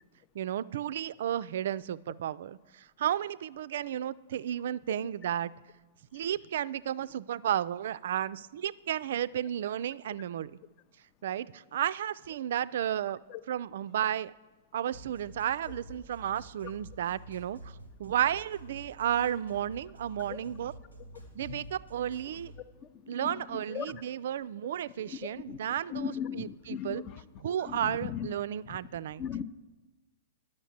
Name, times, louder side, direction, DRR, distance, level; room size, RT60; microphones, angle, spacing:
voice 1, 0.3-5.5 6.1-10.5 11.2-13.2 13.5-14.3 14.7-17.7 18.0-20.7 21.3-22.5 23.1-27.0 27.4-29.2, right 10 dB, 60° right, 17 dB, 0.3 m, -33 dB
sound 1, 14.9-22.6, right 1 dB, 90° left, 2.7 m, -49 dB
voice 2, 22.8-24.0 25.0-27.2 27.6-28.3 28.6-28.8 29.2-29.4, left 8 dB, 35° left, 15 dB, 0.5 m, -39 dB
10.0 x 6.4 x 7.2 m, 1.2 s
figure-of-eight pair, 110°, 0 cm